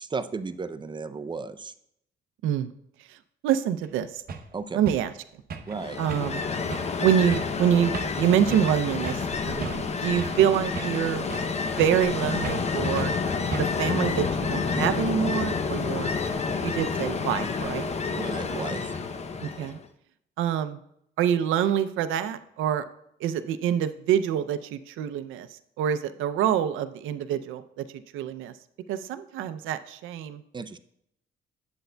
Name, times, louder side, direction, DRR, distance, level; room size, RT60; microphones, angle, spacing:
voice 1, 0.0-1.7 4.5-4.8 5.7-6.0 18.2-18.8 30.5-30.8, right 4 dB, 25° right, 11 dB, 0.4 m, -34 dB
voice 2, 3.4-4.2 4.7-5.1 6.0-6.4 7.0-11.3 11.7-13.2 13.5-16.1 16.6-17.9 19.4-19.8 20.4-20.8 21.2-22.8 23.2-28.5 28.9-30.4, right 9 dB, 85° right, 12 dB, 0.5 m, -26 dB
sound 1, 3.8-3.9 4.3-4.5 4.9-5.1 5.5-5.8 6.1-6.4 6.7-6.9 7.3-7.6 7.9-8.2 8.5-8.8 9.1-9.3 9.6-10.4 10.8-11.5 11.8-12.1 12.4-12.7 13.0-13.2 13.5-13.9, right 5 dB, 50° right, 0.7 m, -36 dB
Ocean, 5.7-19.8, left 4 dB, 35° left, 0.6 m, -29 dB
7.9 x 7.9 x 2.2 m, 0.74 s
cardioid pair, 90°, 20 cm